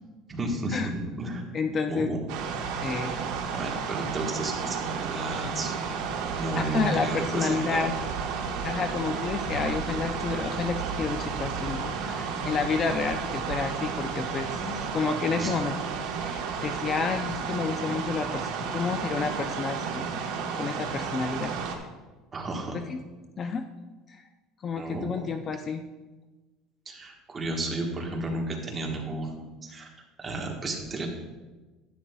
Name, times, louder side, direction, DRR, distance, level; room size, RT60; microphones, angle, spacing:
voice 1, 0.3-0.9 1.2-1.4 1.9-2.2 3.1-5.9 6.4-7.9 14.6-14.8 15.4-15.6 22.3-22.8 24.8-25.3 26.8-29.9 30.2-31.1, right 2 dB, 20° right, 1 dB, 1.3 m, -33 dB
voice 2, 1.5-2.1 2.8-3.2 6.4-7.9 8.6-14.6 14.9-15.7 16.2-21.5 22.7-23.0 23.4-23.7 24.1-24.2 24.6-25.8, left 5 dB, 30° left, 7 dB, 0.4 m, -30 dB
sound 1, 2.3-21.8, right 6 dB, 70° right, 1.2 m, -32 dB
11.0 x 9.9 x 2.3 m, 1.2 s
cardioid pair, 155°, 0 cm